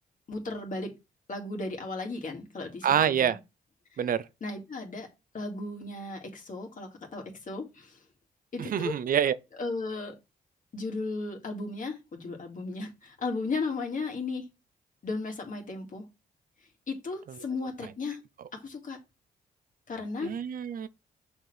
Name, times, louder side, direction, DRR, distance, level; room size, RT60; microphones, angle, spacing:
voice 1, 0.3-0.9 1.3-3.4 4.4-5.1 5.3-8.0 8.5-9.0 9.6-10.1 10.7-14.4 15.0-16.0 16.9-18.2 18.5-19.0 19.9-20.3, left 3 dB, 55° left, 2.1 m, -35 dB
voice 2, 2.8-3.4 4.0-4.2 8.6-9.3 20.2-20.9, right 9 dB, 60° right, 0.5 m, -26 dB
6.4 x 4.4 x 3.3 m
cardioid pair, 65°, 16 cm